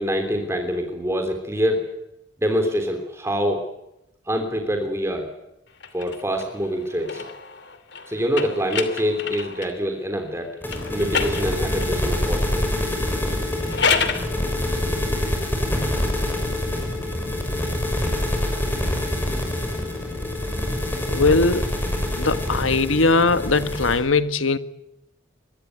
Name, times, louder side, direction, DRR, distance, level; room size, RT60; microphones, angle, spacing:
voice 1, 0.0-1.8 2.4-3.7 4.3-5.3 5.9-7.2 8.1-10.6 10.9-12.7, equal, 15° right, 3.3 m, -25 dB
sound 1, 5.8-9.8 10.7-12.0 13.5-14.3, left 5 dB, 60° left, 2.8 m, -28 dB
sound 2, 10.6-24.0, left 1 dB, 10° left, 6.6 m, -25 dB
voice 2, 21.1-21.7 22.2-24.6, left 3 dB, 85° left, 1.5 m, -20 dB
23.5 x 21.0 x 9.4 m
head